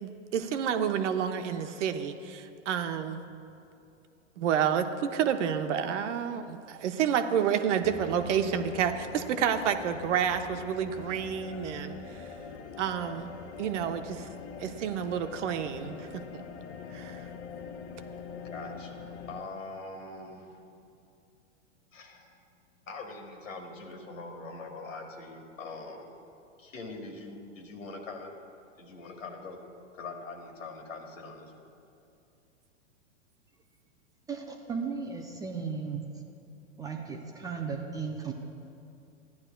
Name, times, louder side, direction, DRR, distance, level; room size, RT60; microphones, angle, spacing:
voice 1, 0.0-3.2 4.4-12.2 12.8-13.3 13.6-14.3 14.6-16.1 16.3-16.4 16.9-17.2, right 8 dB, 65° right, 8 dB, 0.8 m, -29 dB
sound 1, 7.8-19.4, left 6 dB, 65° left, 0.9 m, -44 dB
voice 2, 18.3-20.6 21.9-22.4 22.9-26.1 26.6-28.3 28.8-29.6 29.9-31.5, left 3 dB, 85° left, 3 dB, 1.6 m, -43 dB
voice 3, 34.3-36.0 36.8-38.3, right 5 dB, 10° right, 2 dB, 0.3 m, -35 dB
15.0 x 10.5 x 2.2 m, 2.6 s
hypercardioid pair, 115°, 38 cm